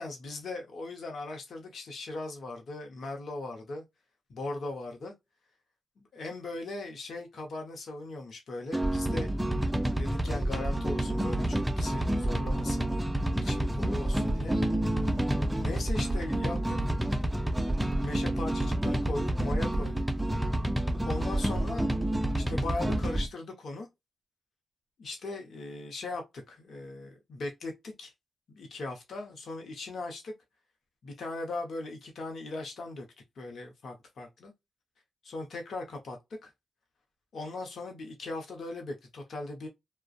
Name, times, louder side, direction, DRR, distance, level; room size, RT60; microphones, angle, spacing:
voice 1, 0.0-3.8 4.3-5.1 6.0-9.3 9.9-12.9 13.4-14.6 15.6-16.9 18.0-20.0 21.0-21.9 22.4-23.9 25.0-28.1 28.5-30.3 31.0-33.1 33.4-34.5 35.2-36.2 36.4-36.5 37.3-39.7, left 2 dB, 65° left, 0.7 m, -39 dB
sound 1, 8.7-23.3, right 1 dB, 10° right, 0.5 m, -29 dB
2.4 x 2.2 x 2.3 m
hypercardioid pair, 40°, 0 cm